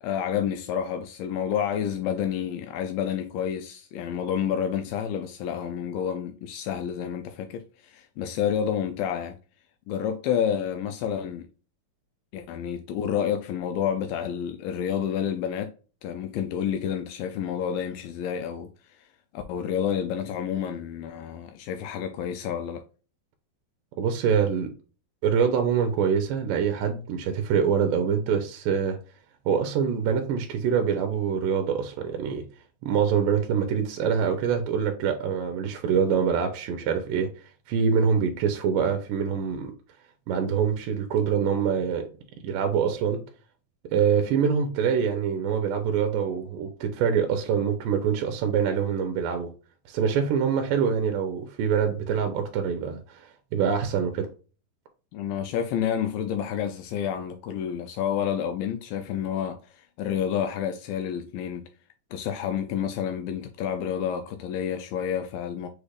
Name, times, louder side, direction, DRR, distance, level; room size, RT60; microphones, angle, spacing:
voice 1, 0.0-9.4 9.9-11.5 12.3-15.7 16.0-18.7 19.3-22.8 55.1-61.7 62.1-65.7, left 8 dB, 85° left, 2.2 m, -29 dB
voice 2, 24.0-24.7 25.2-29.0 29.5-32.4 32.8-37.3 37.7-39.7 40.3-42.0 42.4-43.2 43.9-49.5 49.9-54.3, right 7 dB, 80° right, 2.2 m, -25 dB
6.3 x 3.3 x 2.4 m
omnidirectional pair, 4.1 m